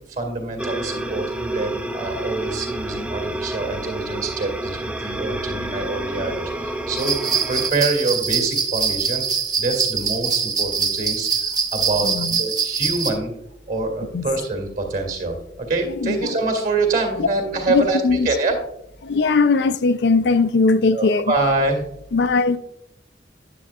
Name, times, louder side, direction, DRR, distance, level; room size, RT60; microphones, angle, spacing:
voice 1, 0.1-9.2 9.6-13.3 13.7-18.6 20.9-21.8, right 2 dB, 50° right, 2.2 m, -25 dB
sound 1, 0.6-7.7, right 1 dB, 5° right, 0.4 m, -29 dB
sound 2, 7.0-13.1, right 6 dB, 20° right, 0.9 m, -23 dB
voice 2, 12.0-12.4 14.1-14.2 16.0-16.4 17.7-18.3 19.0-21.3 22.1-22.6, left 4 dB, 70° left, 0.5 m, -19 dB
9.8 x 7.8 x 2.4 m
head